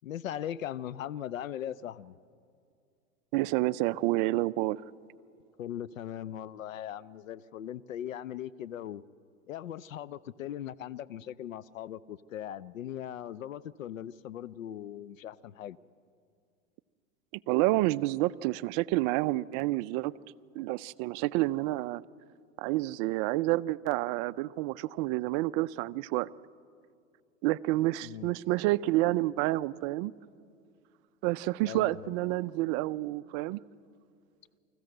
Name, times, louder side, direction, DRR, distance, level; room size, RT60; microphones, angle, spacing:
voice 1, 0.0-2.1 5.6-9.0 9.5-15.8 28.0-28.3 31.7-32.4, left 10 dB, 85° left, 18 dB, 0.6 m, -39 dB
voice 2, 3.3-4.8 17.5-20.1 20.6-22.0 22.6-26.3 27.4-30.1 31.2-33.6, right 18 dB, 40° right, 17 dB, 0.4 m, -29 dB
25.0 x 14.5 x 7.8 m, 2.3 s
hypercardioid pair, 110°, 39 cm